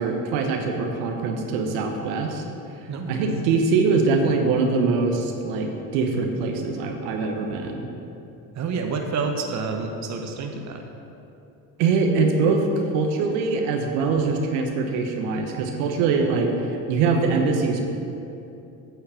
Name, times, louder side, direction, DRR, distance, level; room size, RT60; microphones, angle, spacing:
voice 1, 0.0-2.4 3.1-7.9 11.8-17.8, right 4 dB, 70° right, 3 dB, 1.1 m, -23 dB
voice 2, 2.9-3.3 8.5-10.8, right 4 dB, 40° right, 4 dB, 1.0 m, -28 dB
9.1 x 4.4 x 7.1 m, 2.8 s
hypercardioid pair, 70°, 45 cm